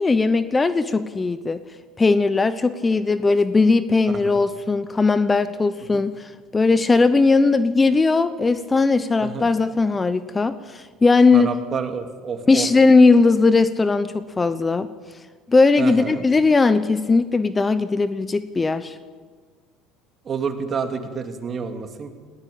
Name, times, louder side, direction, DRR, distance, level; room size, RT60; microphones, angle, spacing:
voice 1, 0.0-1.6 2.0-11.5 12.5-14.9 15.5-18.9, left 3 dB, 20° left, 13 dB, 0.9 m, -18 dB
voice 2, 4.1-4.4 5.9-6.1 9.2-9.5 11.3-12.7 15.8-16.2 20.2-22.1, right 6 dB, 40° right, 6 dB, 2.7 m, -29 dB
19.0 x 16.5 x 8.7 m, 1.6 s
supercardioid pair, 85°, 0 cm